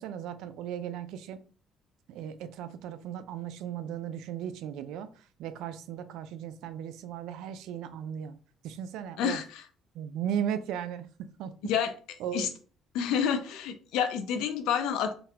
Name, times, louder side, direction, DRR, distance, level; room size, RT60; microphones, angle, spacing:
voice 1, 0.0-1.4 2.1-8.4 8.6-9.4 9.9-11.7 12.2-12.5, right 9 dB, 85° right, 11 dB, 0.3 m, -36 dB
voice 2, 12.9-15.2, left 8 dB, 85° left, 8 dB, 0.5 m, -28 dB
3.8 x 2.2 x 2.7 m, 0.41 s
cardioid pair, 105°, 0 cm